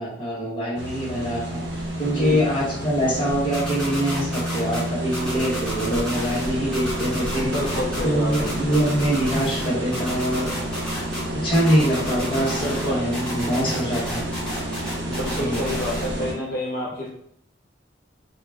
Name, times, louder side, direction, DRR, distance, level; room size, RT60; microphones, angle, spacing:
voice 1, 0.0-1.6 2.0-7.5 8.0-10.5 11.4-14.2 15.3-15.6, equal, 30° left, -7 dB, 1.1 m, -24 dB
sound 1, 0.8-16.3, right 1 dB, 65° right, 0.6 m, -30 dB
voice 2, 2.1-2.4 7.4-8.5 12.6-13.0 15.1-17.1, left 1 dB, 60° left, -5 dB, 0.5 m, -28 dB
sound 2, 3.5-4.8 5.1-6.5 6.7-8.0 8.3-9.7 9.9-11.2 11.5-12.9 13.1-16.1, equal, 5° left, 0.7 m, -33 dB
2.3 x 2.0 x 3.4 m, 0.74 s
head